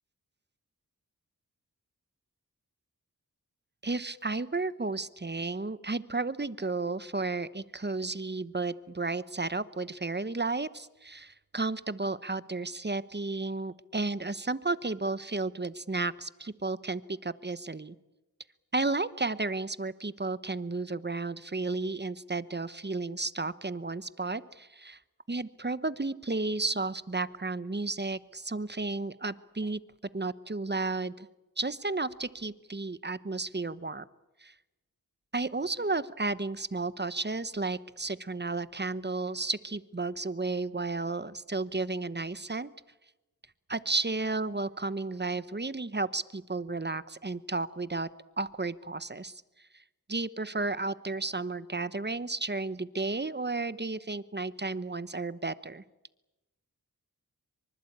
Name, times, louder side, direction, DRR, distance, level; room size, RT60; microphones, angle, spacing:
voice 1, 3.8-17.9 18.7-25.0 25.3-29.8 30.1-31.3 31.6-34.1 34.4-34.5 35.3-42.7 43.7-48.1 48.4-49.4 49.7-49.8 50.1-55.8, right 3 dB, 30° right, 15 dB, 1.0 m, -33 dB
25.0 x 24.5 x 8.7 m, 1.0 s
wide cardioid pair, 60°, 35 cm